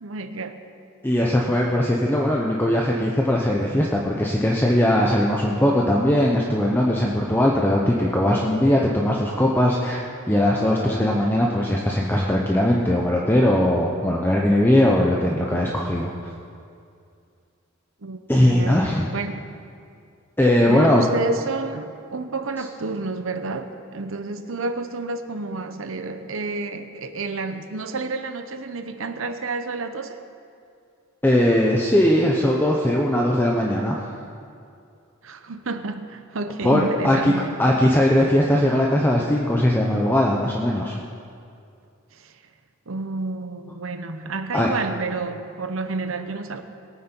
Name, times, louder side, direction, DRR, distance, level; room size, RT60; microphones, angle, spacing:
voice 1, 0.0-0.6 18.0-18.8 19.1-19.5 20.7-30.2 35.2-37.5 42.1-42.4 42.9-46.6, right 3 dB, 70° right, 8 dB, 0.9 m, -30 dB
voice 2, 1.0-16.1 18.3-19.1 20.4-21.0 31.2-34.0 36.6-37.3 37.6-41.0 44.5-44.7, left 1 dB, 10° left, -2 dB, 0.8 m, -20 dB
21.0 x 9.2 x 4.5 m, 2.4 s
head